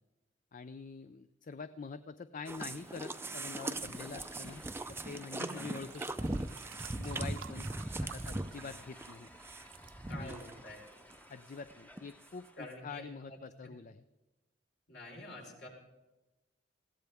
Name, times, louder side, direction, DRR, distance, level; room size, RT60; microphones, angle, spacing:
voice 1, 0.5-4.6 4.9-6.3 7.0-7.7 8.0-9.3 10.1-10.4 11.3-14.0, left 5 dB, 45° left, 12 dB, 0.5 m, -46 dB
sound 1, 2.5-10.8 11.1-11.2 11.7-11.8 12.0-12.1, right 2 dB, 15° right, 0.5 m, -40 dB
sound 2, 2.6-12.9, equal, 10° left, 0.9 m, -58 dB
sound 3, 5.7-9.2 9.5-9.9 10.6-10.7, right 9 dB, 75° right, 0.4 m, -53 dB
voice 2, 10.1-10.8 12.6-13.4 14.9-15.7, left 1 dB, 60° left, -1 dB, 4.6 m, -47 dB
20.5 x 16.5 x 3.5 m, 1.1 s
head